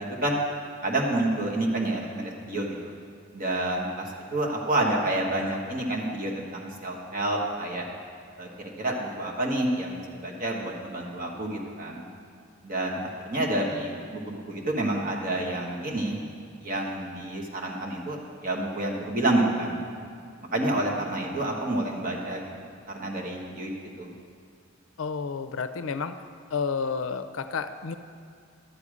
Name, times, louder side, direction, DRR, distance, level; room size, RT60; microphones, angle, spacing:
voice 1, 0.8-2.9 3.3-7.9 8.4-12.0 12.6-16.2 16.6-19.8 20.5-22.5 22.9-23.7 24.0-24.1, right 1 dB, 45° right, -2 dB, 1.5 m, -29 dB
voice 2, 25.0-26.1 26.5-27.9, left 5 dB, 70° left, 10 dB, 0.5 m, -30 dB
11.5 x 8.4 x 5.0 m, 2.3 s
head